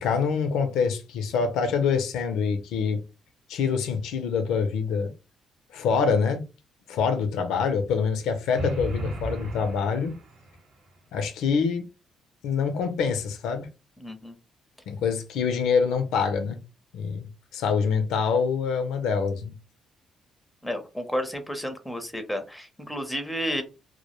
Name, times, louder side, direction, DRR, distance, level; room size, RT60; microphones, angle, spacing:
voice 1, 0.0-3.0 3.5-5.1 5.7-6.4 6.9-10.1 11.1-11.9 12.4-13.7 14.9-16.6 16.9-19.5, left 6 dB, 90° left, 0.4 m, -25 dB
sound 1, 8.5-10.6, right 1 dB, 75° right, 0.7 m, -34 dB
voice 2, 14.0-14.3 20.6-23.6, equal, 5° left, 0.6 m, -31 dB
2.2 x 2.0 x 2.9 m
cardioid pair, 90°, 0 cm